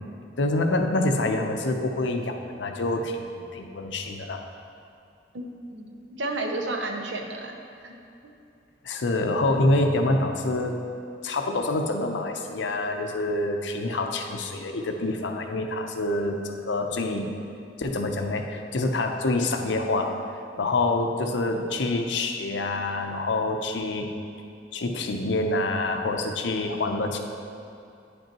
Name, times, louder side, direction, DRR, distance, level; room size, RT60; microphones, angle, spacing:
voice 1, 0.4-4.4 8.8-10.8 11.2-17.3 17.8-20.2 20.6-24.1 24.7-27.2, left 2 dB, 85° left, 4 dB, 0.6 m, -26 dB
voice 2, 5.7-7.6 7.8-8.0 8.2-8.3, right 2 dB, 80° right, 3 dB, 0.7 m, -32 dB
9.7 x 5.4 x 2.9 m, 2.6 s
head